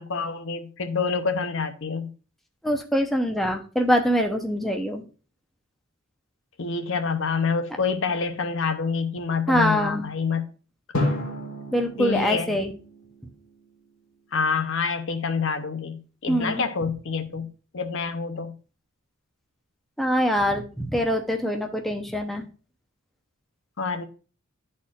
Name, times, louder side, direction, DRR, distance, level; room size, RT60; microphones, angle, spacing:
voice 1, 0.0-2.1 6.6-10.5 12.0-12.6 14.3-17.5 17.7-18.5 23.8-24.1, left 5 dB, 60° left, 0.7 m, -27 dB
voice 2, 2.6-5.0 9.5-10.0 11.7-12.7 16.3-16.6 20.0-22.5, equal, ahead, 0.6 m, -24 dB
Drum, 10.9-13.8, left 1 dB, 85° left, 1.6 m, -31 dB
12.0 x 4.2 x 2.4 m
head